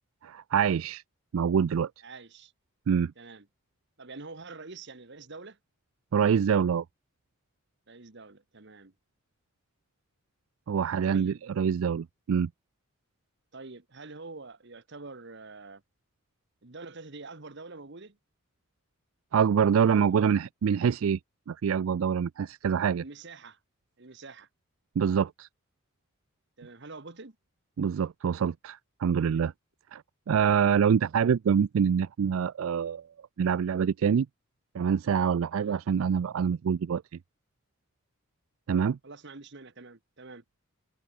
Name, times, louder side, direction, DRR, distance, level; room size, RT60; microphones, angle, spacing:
voice 1, 0.2-1.0 1.3-1.9 2.9-3.1 6.1-6.8 10.7-12.5 19.3-21.2 21.5-23.0 25.0-25.5 27.8-29.5 29.9-30.0 30.3-33.1 33.4-34.3 34.7-37.0 38.7-39.0, right 7 dB, 75° right, 0.4 m, -25 dB
voice 2, 2.0-2.5 3.2-3.5 4.0-5.6 7.9-8.9 11.0-11.4 13.5-15.8 16.6-18.2 19.9-20.3 23.0-23.6 24.0-24.5 26.6-27.4 29.2-29.5 35.6-35.8 39.0-40.4, right 3 dB, 55° right, 1.4 m, -46 dB
head